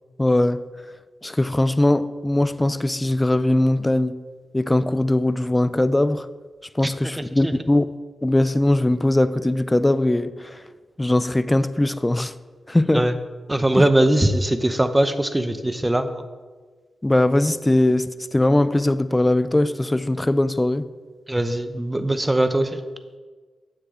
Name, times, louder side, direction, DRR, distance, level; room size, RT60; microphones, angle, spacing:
voice 1, 0.2-0.6 1.2-4.2 4.5-6.3 6.7-7.9 8.2-10.6 11.0-12.3 12.7-13.1 13.7-13.9 17.0-20.9, left 1 dB, 20° left, 0.4 m, -20 dB
voice 2, 13.5-16.1 21.3-22.8, right 1 dB, 15° right, 0.8 m, -20 dB
10.0 x 7.6 x 3.8 m
cardioid pair, 55°, 0 cm